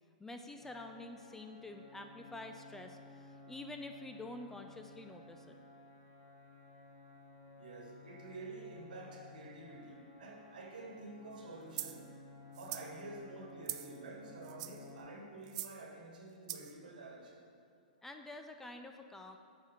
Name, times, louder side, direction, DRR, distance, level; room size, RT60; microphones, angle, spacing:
voice 1, 0.2-5.6 18.0-19.4, left 2 dB, 10° left, 5 dB, 0.4 m, -48 dB
sound 1, 0.6-15.0, left 2 dB, 35° left, 1.9 m, -56 dB
voice 2, 7.6-12.1 12.6-17.5, right 2 dB, 75° right, 1 dB, 1.4 m, -49 dB
Salsa Eggs - Brown Egg (raw), 11.7-12.0 12.5-12.9 13.6-14.0 14.4-14.9 15.5-15.8 16.5-16.7, right 13 dB, 50° right, 0.4 m, -42 dB
7.1 x 5.0 x 5.5 m, 2.3 s
hypercardioid pair, 125°, 5 cm